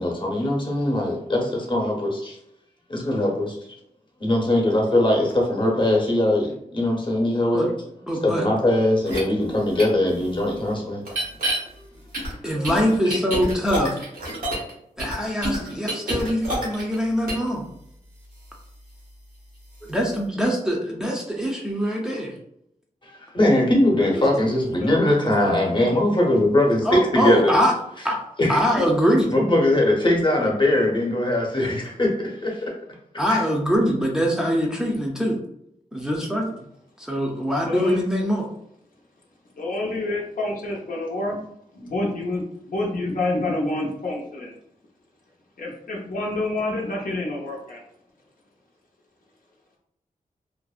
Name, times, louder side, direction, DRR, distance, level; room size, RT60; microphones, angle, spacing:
voice 1, 0.0-2.4 2.9-3.7 4.2-7.7 8.2-11.0 12.6-12.7 13.0-13.2 23.0-27.5 28.4-28.6 29.3-32.8 33.3-33.4, left 1 dB, 35° left, -1 dB, 0.9 m, -21 dB
voice 2, 8.1-8.5 12.4-14.0 15.0-17.6 19.9-22.3 24.1-24.2 24.5-24.6 26.8-27.7 28.0-28.2 28.5-29.3 33.2-35.4 35.9-36.5 37.0-38.5, equal, 5° right, -1 dB, 0.5 m, -23 dB
sound 1, 9.1-9.2 9.8-9.9 11.0-11.6 12.1-14.7 15.0-17.0 17.3-17.5, right 1 dB, 85° right, 0.9 m, -27 dB
voice 3, 37.6-38.0 39.6-41.4 41.7-44.5 45.6-47.8, left 2 dB, 75° left, -2 dB, 0.6 m, -28 dB
2.5 x 2.0 x 2.3 m, 0.75 s
wide cardioid pair, 70°, 15 cm